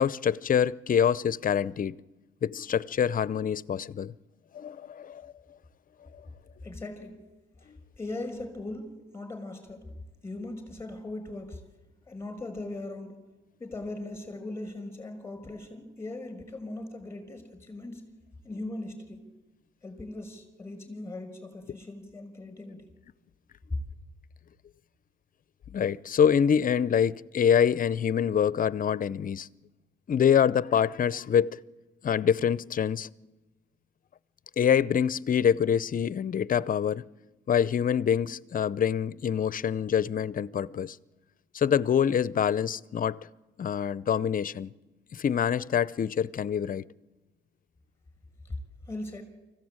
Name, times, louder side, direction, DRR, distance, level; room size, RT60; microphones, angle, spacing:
voice 1, 0.0-2.0 2.4-4.1 4.5-5.3 25.7-29.5 30.1-31.5 32.0-33.1 34.6-37.0 37.5-41.0 41.5-43.2 43.6-44.7 45.1-46.8, left 8 dB, 45° left, 0.7 m, -25 dB
voice 2, 6.6-7.2 8.0-9.9 10.2-11.6 12.1-13.2 13.6-18.1 18.4-19.3 19.8-22.9 48.9-49.2, left 2 dB, 15° left, 5.9 m, -39 dB
25.0 x 15.5 x 8.9 m
cardioid pair, 90°, 20 cm